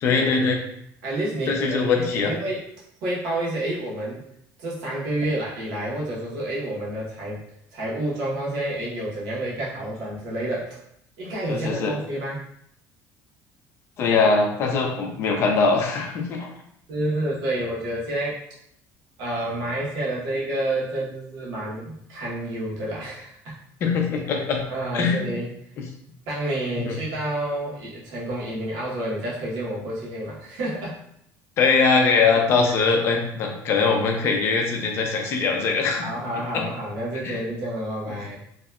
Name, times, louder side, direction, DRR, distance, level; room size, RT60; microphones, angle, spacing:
voice 1, 0.0-0.6 1.5-2.3 11.5-12.0 14.0-16.5 23.8-24.6 24.9-25.4 26.9-27.0 31.6-36.1 36.5-36.6 37.2-37.4, left 4 dB, 40° left, 2 dB, 0.4 m, -22 dB
voice 2, 1.0-2.6 3.0-4.2 4.6-7.4 7.7-10.8 11.2-12.4 16.9-18.4 19.2-23.5 24.7-25.5 26.3-31.0 32.3-32.9 36.0-38.4, right 1 dB, 80° right, -5 dB, 0.9 m, -29 dB
2.7 x 2.2 x 2.3 m, 0.72 s
cardioid pair, 175°, 7 cm